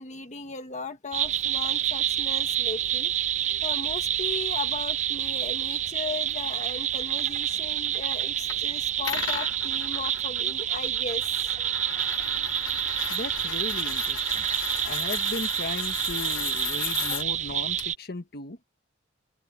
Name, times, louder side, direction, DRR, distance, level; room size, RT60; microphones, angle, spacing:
voice 1, 0.0-3.1 3.6-11.8 17.1-17.2, left 4 dB, 40° left, 1.4 m, -37 dB
sound 1, 1.1-17.9, right 11 dB, 40° right, 0.4 m, -28 dB
sound 2, 8.5-8.6 9.0-17.2 17.8-17.9, left 9 dB, 85° left, 1.2 m, -36 dB
sound 3, 12.2-17.3, equal, 70° right, 7.0 m, -58 dB
voice 2, 13.1-14.5 14.8-18.6, left 2 dB, 55° left, 1.6 m, -36 dB
open air
head